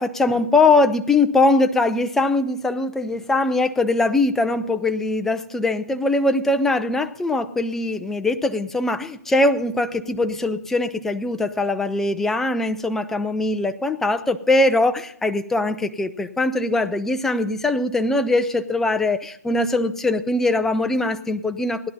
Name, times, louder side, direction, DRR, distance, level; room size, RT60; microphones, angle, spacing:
voice 1, 0.0-21.9, left 2 dB, 5° left, 9 dB, 0.4 m, -21 dB
17.0 x 11.0 x 4.1 m, 0.70 s
hypercardioid pair, 150°, 10 cm